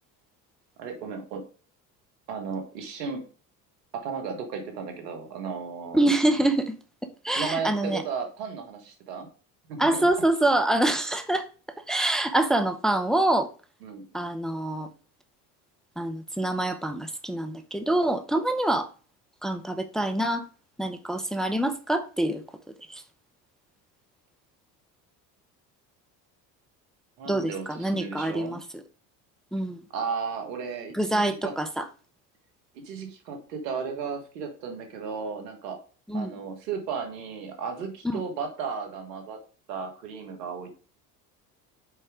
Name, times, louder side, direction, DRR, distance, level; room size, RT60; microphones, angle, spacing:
voice 1, 0.8-1.4 2.3-3.2 3.9-6.0 7.3-9.3 9.7-10.1 13.8-14.0 27.2-28.6 29.9-31.5 32.8-35.8 36.1-39.4 39.7-40.7, right 5 dB, 85° right, 1.7 m, -34 dB
voice 2, 5.9-6.8 7.2-8.0 9.8-11.5 11.9-13.5 14.1-14.9 16.0-18.9 19.4-20.5 20.8-22.4 22.9-23.0 27.3-28.6 29.5-29.8 30.9-31.9 36.1-36.3 38.1-38.2, right 1 dB, ahead, 0.9 m, -25 dB
5.5 x 4.9 x 4.8 m
hypercardioid pair, 75°, 48 cm